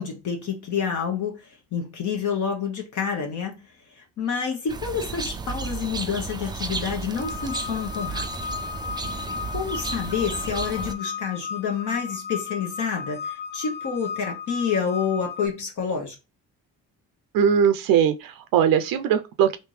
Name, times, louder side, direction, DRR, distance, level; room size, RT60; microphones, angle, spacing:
voice 1, 0.0-8.3 9.5-16.1, left 6 dB, 55° left, 0.9 m, -28 dB
sound 1, 4.7-10.9, right 4 dB, 15° right, 0.3 m, -33 dB
sound 2, 7.2-15.5, left 6 dB, 30° left, 0.7 m, -34 dB
voice 2, 17.3-19.6, right 8 dB, 70° right, 0.5 m, -20 dB
3.3 x 2.6 x 3.1 m
cardioid pair, 100°, 36 cm